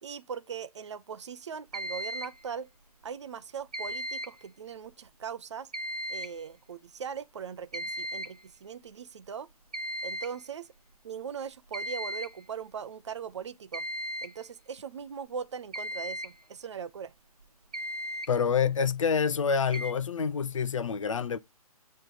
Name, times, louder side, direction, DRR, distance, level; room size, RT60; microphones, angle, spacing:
voice 1, 0.0-2.7 3.0-5.7 6.1-9.5 10.0-10.7 11.0-13.9 14.2-17.1, right 7 dB, 50° right, 0.6 m, -40 dB
sound 1, 1.7-2.4 3.7-4.4 5.7-6.4 7.7-8.4 9.7-10.4 11.7-12.4 13.7-14.4 15.7-16.3 17.4-17.5 17.7-18.3 19.7-19.9, equal, 85° right, 1.0 m, -36 dB
voice 2, 18.3-21.4, left 6 dB, 55° left, 0.6 m, -27 dB
8.7 x 3.2 x 4.0 m
figure-of-eight pair, 130°, 19 cm